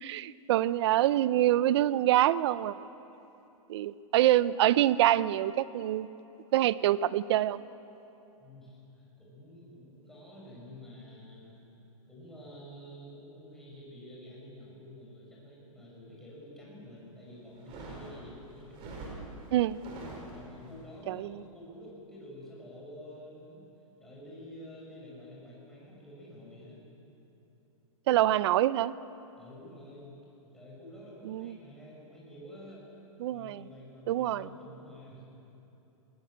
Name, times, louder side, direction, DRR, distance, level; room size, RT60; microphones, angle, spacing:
voice 1, 0.0-2.8 3.7-6.1 6.5-7.6 19.5-19.8 21.1-21.4 28.1-28.9 31.2-31.6 33.2-33.6 34.1-34.5, right 13 dB, 50° right, 18 dB, 0.6 m, -26 dB
voice 2, 8.4-11.7 12.1-19.3 20.3-23.6 24.0-26.8 29.4-30.2 30.5-32.8 33.3-35.2, left 1 dB, ahead, -6 dB, 6.6 m, -49 dB
sound 1, 17.5-20.8, right 2 dB, 30° right, 5.0 m, -44 dB
21.0 x 19.0 x 8.8 m, 2.9 s
hypercardioid pair, 155°, 18 cm